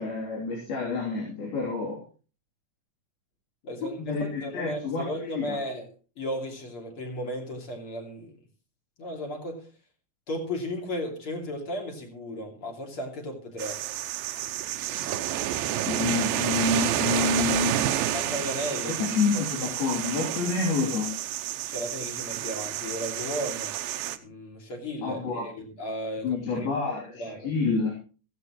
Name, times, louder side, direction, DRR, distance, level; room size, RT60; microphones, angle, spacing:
voice 1, 0.0-2.0 4.1-5.1 5.4-5.6 15.9-17.9 19.0-21.1 25.0-25.4 26.2-27.9, left 4 dB, 85° left, -3 dB, 5.2 m, -28 dB
voice 2, 3.6-5.9 6.2-8.5 9.0-9.7 10.3-13.8 18.0-19.4 21.7-23.8 24.2-26.7 27.1-27.5, equal, 40° left, 1 dB, 3.4 m, -35 dB
sound 1, 13.6-24.2, right 12 dB, 80° right, 2.6 m, -29 dB
15.5 x 15.0 x 3.1 m, 0.37 s
omnidirectional pair, 4.2 m